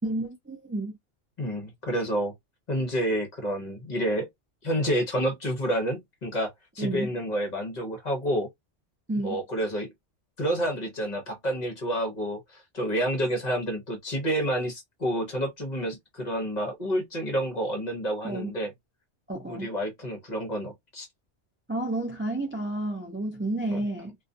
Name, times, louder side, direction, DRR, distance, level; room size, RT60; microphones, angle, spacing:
voice 1, 0.0-1.0 6.8-7.1 9.1-9.4 18.2-18.5 19.3-19.7 21.7-24.1, right 2 dB, 20° right, 0.3 m, -31 dB
voice 2, 1.4-2.3 2.7-4.3 4.6-8.5 9.2-9.9 10.4-18.7 19.5-21.1 23.7-23.8, equal, 40° left, 0.8 m, -29 dB
2.3 x 2.3 x 2.5 m
omnidirectional pair, 1.2 m